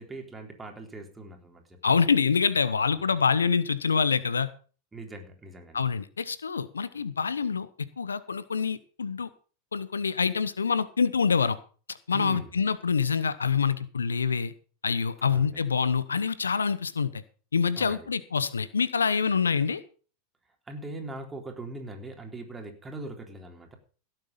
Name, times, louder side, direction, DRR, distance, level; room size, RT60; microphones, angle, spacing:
voice 1, 0.0-2.0 4.9-5.9 12.1-12.5 15.2-15.6 17.8-18.1 20.7-23.8, right 2 dB, 15° right, 3 dB, 3.8 m, -41 dB
voice 2, 1.8-4.5 5.7-7.7 8.0-9.3 9.7-11.6 11.9-14.5 14.8-17.2 17.5-19.8, left 5 dB, 85° left, 17 dB, 0.8 m, -26 dB
17.0 x 7.8 x 5.6 m, 0.39 s
figure-of-eight pair, 90°, 0 cm